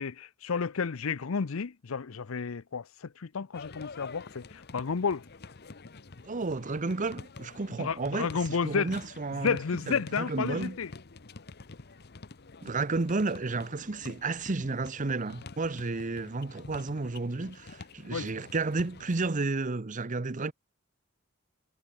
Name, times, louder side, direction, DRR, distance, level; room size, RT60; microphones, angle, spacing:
voice 1, 0.0-5.2 7.8-8.9 9.4-10.9 18.1-18.3, left 5 dB, 85° left, 0.6 m, -31 dB
sound 1, 3.5-19.4, left 3 dB, 50° left, 1.0 m, -48 dB
voice 2, 6.2-9.6 9.9-10.8 12.6-20.5, right 3 dB, 40° right, 0.8 m, -32 dB
head